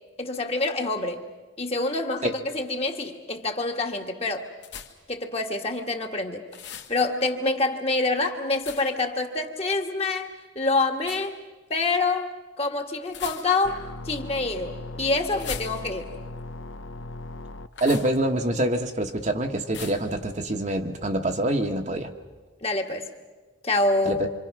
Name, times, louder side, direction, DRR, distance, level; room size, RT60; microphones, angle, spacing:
voice 1, 0.2-1.2 1.6-4.5 5.1-6.4 6.9-10.3 10.6-11.4 11.7-12.3 12.6-13.8 14.1-16.1 22.6-23.0 23.6-24.2, left 3 dB, 30° left, 4 dB, 1.7 m, -26 dB
sound 1, 4.6-5.1 6.5-7.0 8.6-9.1 11.0-11.3 13.1-13.8 15.3-16.2 17.7-18.2 19.7-20.1, left 7 dB, 60° left, 1.9 m, -39 dB
sound 2, 13.6-17.7, left 2 dB, 80° left, 0.8 m, -38 dB
voice 2, 17.8-22.1 24.1-24.3, right 1 dB, 35° right, 5 dB, 1.2 m, -25 dB
26.5 x 26.5 x 6.0 m, 1.3 s
head